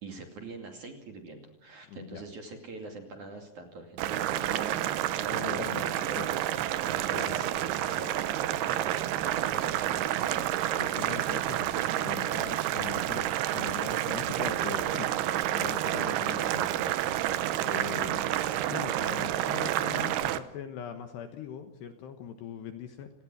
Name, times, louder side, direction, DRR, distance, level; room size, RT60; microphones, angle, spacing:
voice 1, 0.0-10.4, right 3 dB, 45° right, 4 dB, 3.2 m, -44 dB
voice 2, 1.9-2.2 5.3-5.9 6.2-6.3 7.1-7.4 10.8-15.2 15.5-17.0 17.7-18.2 18.7-23.1, left 8 dB, 70° left, 7 dB, 2.9 m, -41 dB
Boiling, 4.0-20.4, right 13 dB, 85° right, 2.3 m, -29 dB
29.5 x 18.5 x 6.3 m, 0.78 s
omnidirectional pair, 6.0 m